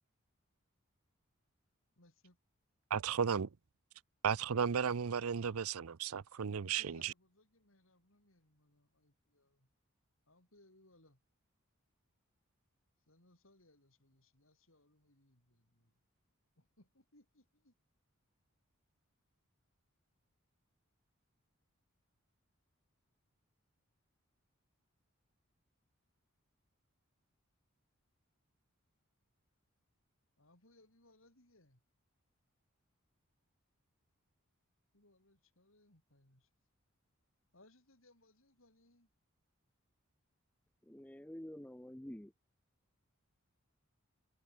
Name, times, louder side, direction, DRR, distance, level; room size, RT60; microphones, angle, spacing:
voice 1, 2.0-2.4 6.6-9.7 10.3-11.2 13.1-15.9 16.6-17.7 30.4-31.8 34.9-36.5 37.5-39.1, left 1 dB, 65° left, 6.9 m, -67 dB
voice 2, 2.9-3.5 4.2-6.8, right 7 dB, 85° right, 0.6 m, -34 dB
voice 3, 40.8-42.3, equal, 5° left, 0.6 m, -48 dB
head